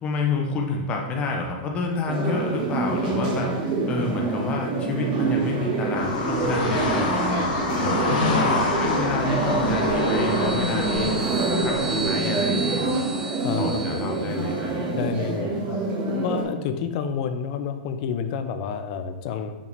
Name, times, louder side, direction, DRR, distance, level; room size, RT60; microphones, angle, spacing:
voice 1, 0.0-3.5 3.8-8.5 8.8-11.1 11.6-13.0 13.6-14.8, left 3 dB, 25° left, 1 dB, 0.9 m, -29 dB
sound 1, 2.1-16.4, right 3 dB, 40° right, 2.0 m, -26 dB
sound 2, 5.9-12.1, left 3 dB, 65° left, 1.5 m, -27 dB
voice 2, 8.1-8.5 13.4-14.1 14.9-15.8 16.2-19.6, left 6 dB, 45° left, 9 dB, 0.6 m, -29 dB
sound 3, 9.2-14.7, right 4 dB, 10° right, 0.5 m, -35 dB
6.7 x 5.6 x 3.5 m, 1.1 s
supercardioid pair, 150°, 5 cm